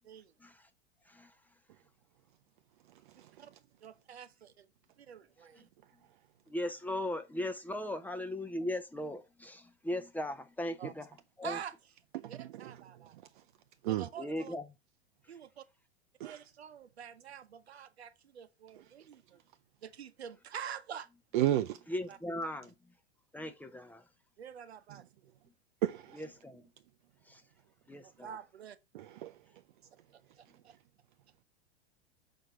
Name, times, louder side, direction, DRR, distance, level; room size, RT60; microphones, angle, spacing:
voice 1, 3.1-3.5 3.8-4.7 5.0-5.7 10.8-10.9 11.4-11.7 12.3-13.1 13.8-14.5 15.3-15.6 16.2-19.4 19.8-21.1 22.1-22.2 24.4-25.0 28.0-28.8 30.1-30.7, right 8 dB, 70° right, 0.9 m, -47 dB
voice 2, 6.5-11.1 11.4-11.6 14.2-14.6 21.9-22.7 23.3-24.0 26.1-26.6 27.3-27.4 27.9-28.4, left 1 dB, 5° left, 0.7 m, -38 dB
voice 3, 21.3-21.8 25.8-26.2 28.9-29.3, right 13 dB, 50° right, 0.6 m, -31 dB
6.3 x 4.4 x 5.1 m
figure-of-eight pair, 95°, 33 cm